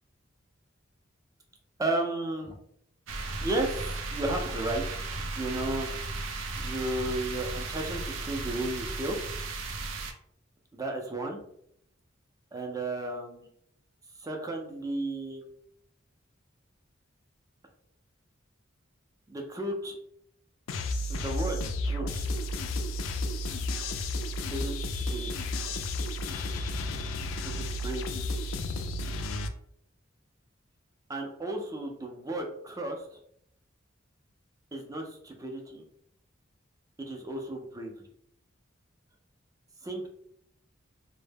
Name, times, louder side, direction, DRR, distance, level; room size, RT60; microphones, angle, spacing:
voice 1, 1.8-2.6 3.4-5.0 5.3-5.9 6.6-9.2 10.7-11.4 12.5-13.5 14.2-15.4 19.3-20.0 21.1-22.3 24.5-25.5 27.4-28.2 31.1-33.2 34.7-35.8 37.0-37.9 39.8-40.1, right 2 dB, 20° right, 2 dB, 0.4 m, -34 dB
sound 1, 3.1-10.1, right 3 dB, 80° right, 0.4 m, -35 dB
sound 2, 20.7-29.5, left 1 dB, 85° left, 0.3 m, -32 dB
2.1 x 2.1 x 3.3 m, 0.70 s
head